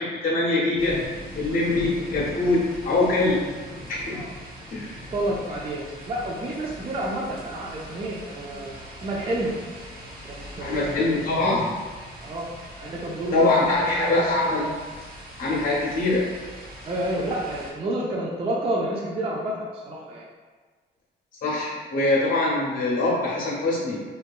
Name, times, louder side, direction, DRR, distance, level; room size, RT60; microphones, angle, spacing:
voice 1, 0.2-1.0 1.4-3.4 3.9-4.2 4.7-4.9 10.6-11.7 13.3-14.6 15.4-16.3 21.4-24.0, left 2 dB, 45° left, -6 dB, 0.6 m, -23 dB
sound 1, 0.8-17.7, equal, 45° right, 1.1 m, -41 dB
voice 2, 5.1-8.7 9.0-9.5 10.2-11.1 11.3-11.6 12.2-12.5 12.8-14.8 16.8-20.2, right 1 dB, 30° right, -4 dB, 0.4 m, -30 dB
2.7 x 2.3 x 2.3 m, 1.4 s
cardioid pair, 90°, 20 cm